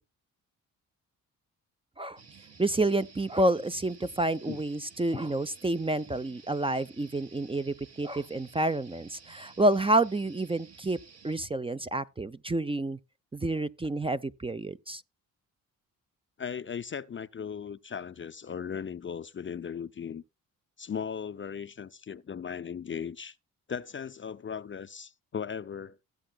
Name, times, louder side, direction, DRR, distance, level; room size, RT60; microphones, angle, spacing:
sound 1, 2.2-11.4, right 5 dB, 45° right, 1.4 m, -54 dB
voice 1, 2.6-11.0 11.2-13.0 13.3-15.0, right 2 dB, 15° right, 0.5 m, -29 dB
voice 2, 16.4-20.2 20.8-23.4 23.7-26.0, left 7 dB, 35° left, 0.5 m, -37 dB
17.5 x 7.8 x 2.3 m
supercardioid pair, 60°, 37 cm